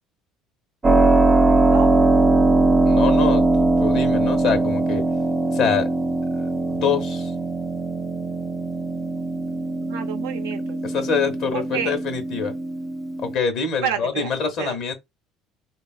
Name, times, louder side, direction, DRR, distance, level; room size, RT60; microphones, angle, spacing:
Keyboard (musical), 0.8-13.4, right 2 dB, 25° right, 0.4 m, -20 dB
voice 1, 2.9-5.1 5.5-5.9 6.7-7.3 10.8-12.5 13.2-14.9, left 6 dB, 60° left, 0.9 m, -25 dB
voice 2, 9.8-10.8 11.5-11.9 13.8-14.3 14.6-14.8, right 8 dB, 85° right, 0.5 m, -29 dB
3.4 x 2.3 x 2.3 m
supercardioid pair, 75°, 0 cm